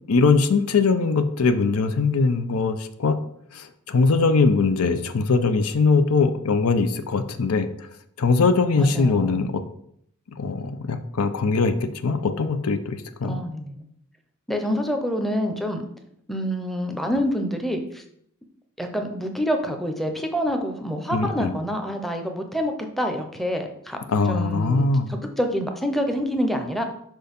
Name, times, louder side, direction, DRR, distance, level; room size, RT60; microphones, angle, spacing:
voice 1, 0.1-3.2 3.5-7.7 8.2-9.6 10.3-13.4 21.1-21.5 24.1-25.1, left 4 dB, 90° left, 10 dB, 0.6 m, -21 dB
voice 2, 8.8-9.5 13.2-13.8 14.5-15.8 16.3-18.0 18.8-24.0 24.3-24.8 25.1-26.8, equal, ahead, 4 dB, 0.6 m, -27 dB
5.2 x 4.5 x 5.2 m, 0.70 s
head